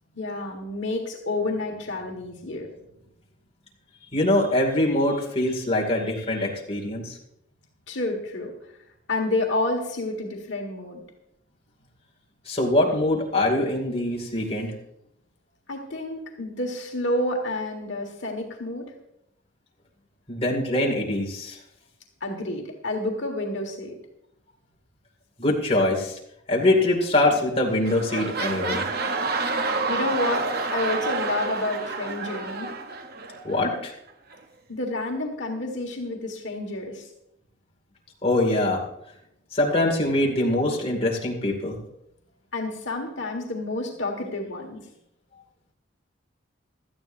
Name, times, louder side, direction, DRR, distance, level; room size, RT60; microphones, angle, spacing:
voice 1, 0.1-2.7 7.9-8.5 9.1-11.0 15.7-18.9 22.2-24.0 29.9-32.7 34.7-37.1 42.5-44.8, left 2 dB, 60° left, 1 dB, 1.7 m, -29 dB
voice 2, 4.1-7.1 12.5-14.7 20.3-21.6 25.4-26.1 26.5-28.9 33.4-33.9 38.2-38.8 39.5-41.8, left 1 dB, 30° left, -1 dB, 2.2 m, -23 dB
sound 1, 27.3-27.5 27.8-33.6 34.3-34.4, right 3 dB, 50° right, 0.8 m, -29 dB
17.5 x 12.5 x 2.6 m, 0.79 s
head